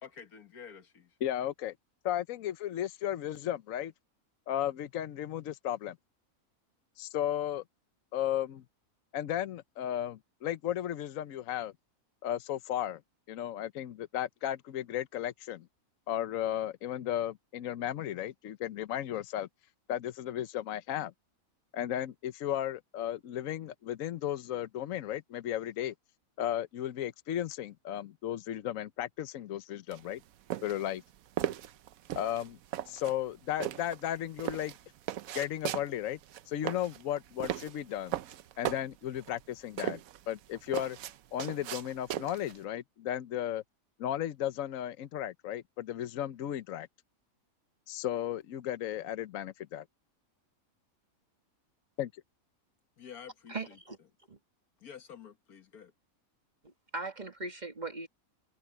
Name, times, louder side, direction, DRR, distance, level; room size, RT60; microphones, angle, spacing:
voice 1, 0.0-1.2 53.0-53.8 54.8-55.9, left 7 dB, 90° left, 1.9 m, -49 dB
voice 2, 1.2-1.7 2.0-3.9 4.5-6.0 7.0-7.6 8.1-8.6 9.1-11.7 12.2-13.0 13.3-15.7 16.1-19.5 19.9-21.1 21.7-25.9 26.4-30.2 30.6-31.0 32.1-32.6 32.9-34.7 35.3-36.2 36.5-38.2 38.6-40.0 40.3-41.0 41.3-43.6 44.0-46.9 47.9-49.8 52.0-52.1, left 11 dB, 70° left, 1.1 m, -34 dB
sound 1, 29.9-42.6, right 11 dB, 75° right, 1.1 m, -38 dB
voice 3, 53.5-54.0 54.3-54.4 56.6-58.1, right 3 dB, 30° right, 1.5 m, -39 dB
omnidirectional pair, 1.5 m